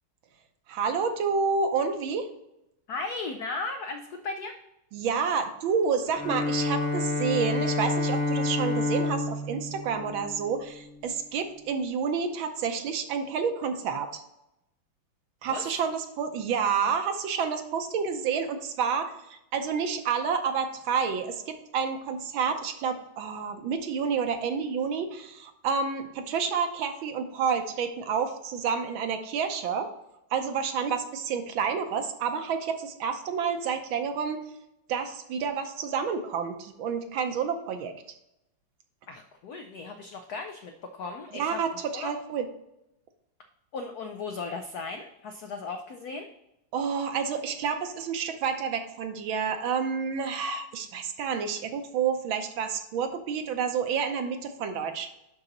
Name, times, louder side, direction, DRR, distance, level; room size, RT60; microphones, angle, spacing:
voice 1, 0.7-2.3 4.9-14.2 15.4-29.9 30.3-34.4 34.9-37.9 41.3-42.5 46.7-55.1, right 6 dB, 70° right, 7 dB, 1.5 m, -29 dB
voice 2, 2.9-4.5 15.5-15.8 39.1-41.6 41.9-42.1 43.7-46.3, left 3 dB, 80° left, 6 dB, 0.8 m, -36 dB
Bowed string instrument, 6.1-11.0, left 2 dB, 15° left, 0.9 m, -29 dB
11.0 x 3.9 x 3.9 m, 0.86 s
omnidirectional pair, 2.4 m